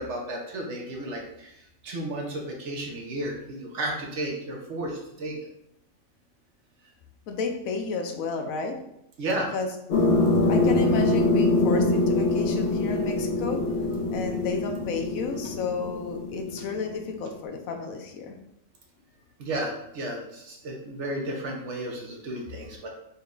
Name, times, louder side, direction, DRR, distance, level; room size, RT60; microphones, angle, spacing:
voice 1, 0.0-1.5 1.8-5.3 9.2-9.5 19.4-22.9, right 1 dB, 60° right, 0 dB, 1.0 m, -33 dB
voice 2, 7.3-8.8 9.5-9.7 10.5-13.6 14.1-18.4, left 4 dB, 85° left, 4 dB, 1.0 m, -32 dB
sound 1, 9.9-17.1, left 2 dB, 55° left, 0.9 m, -24 dB
4.1 x 2.2 x 3.7 m, 0.79 s
omnidirectional pair, 1.4 m